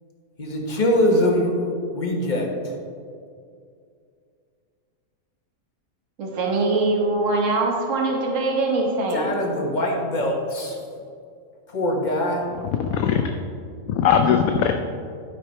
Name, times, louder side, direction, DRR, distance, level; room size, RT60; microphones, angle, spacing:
voice 1, 0.4-2.5 9.1-10.8 11.7-12.4, left 1 dB, 35° left, 0 dB, 1.2 m, -23 dB
voice 2, 6.2-9.4, right 2 dB, 60° right, 0 dB, 1.5 m, -23 dB
voice 3, 12.6-13.4 13.9-14.7, left 7 dB, 75° left, 5 dB, 1.0 m, -20 dB
12.0 x 5.0 x 4.4 m, 2.3 s
omnidirectional pair, 1.6 m